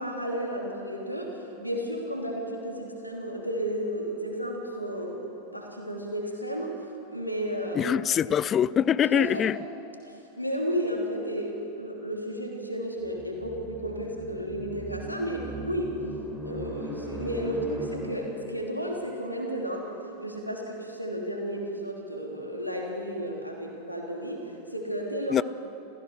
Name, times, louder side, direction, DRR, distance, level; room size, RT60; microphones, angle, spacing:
voice 1, 0.0-6.8 7.1-8.0 9.0-9.5 10.0-16.0 16.4-19.9 20.2-25.4, equal, 90° left, 3.0 m, -33 dB
voice 2, 7.8-9.6 25.3-25.4, left 9 dB, 25° left, 0.4 m, -23 dB
sound 1, 13.0-18.5, equal, 5° left, 4.9 m, -39 dB
27.0 x 15.5 x 6.4 m
figure-of-eight pair, 90°, 0 cm